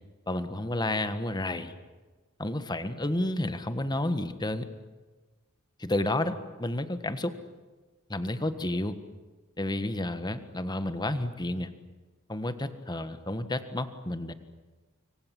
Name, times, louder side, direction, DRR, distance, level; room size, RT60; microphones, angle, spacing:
voice 1, 0.3-1.7 2.4-4.7 5.8-7.3 8.1-8.9 9.6-11.7 12.3-14.3, left 1 dB, 20° left, 10 dB, 1.5 m, -31 dB
25.0 x 25.0 x 7.7 m, 1.3 s
head